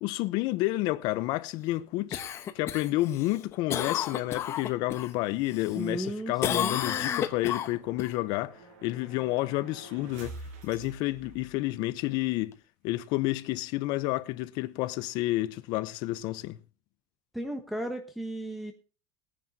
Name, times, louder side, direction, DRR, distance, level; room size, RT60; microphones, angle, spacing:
voice 1, 0.0-2.2 2.5-8.5 8.8-10.3 10.6-12.5 12.8-16.6, left 18 dB, 60° left, 0.8 m, -30 dB
Cough, 2.1-5.1 5.5-6.1 6.4-8.1 12.5-12.6, left 9 dB, 35° left, 1.3 m, -32 dB
sound 1, 5.3-12.0, right 3 dB, 80° right, 5.5 m, -49 dB
voice 2, 5.7-6.8 17.3-18.7, right 1 dB, ahead, 1.1 m, -35 dB
20.0 x 10.0 x 2.8 m
cardioid pair, 155°, 8 cm